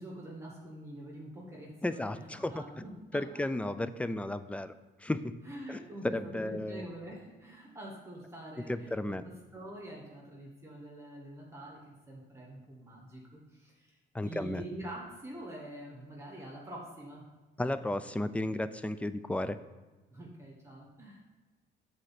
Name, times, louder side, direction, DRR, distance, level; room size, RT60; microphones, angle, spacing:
voice 1, 0.0-2.9 5.4-14.0 14.2-17.2 20.1-21.2, right 1 dB, 15° right, -3 dB, 1.7 m, -45 dB
voice 2, 1.8-2.8 3.1-4.7 5.0-5.3 5.7-6.9 8.6-9.2 14.1-14.6 17.6-19.6, left 1 dB, 5° left, 13 dB, 0.3 m, -34 dB
6.4 x 4.3 x 5.8 m, 1.2 s
cardioid pair, 90°, 20 cm